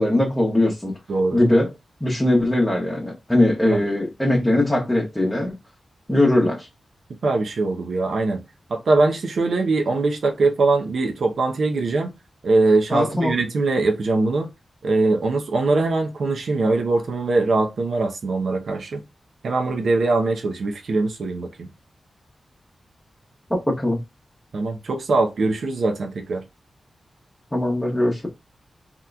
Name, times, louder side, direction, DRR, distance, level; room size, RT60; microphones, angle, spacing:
voice 1, 0.0-0.9 1.3-1.7 2.0-5.5 6.1-6.7 12.9-13.3 23.8-24.0 27.5-28.3, left 1 dB, 10° left, 0.9 m, -20 dB
voice 2, 1.1-1.4 3.7-3.8 7.2-8.4 8.7-12.1 12.4-14.5 14.8-19.0 19.4-21.7 24.5-26.4, right 3 dB, 70° right, 0.6 m, -22 dB
3.7 x 2.9 x 2.2 m
wide cardioid pair, 125°, 0 cm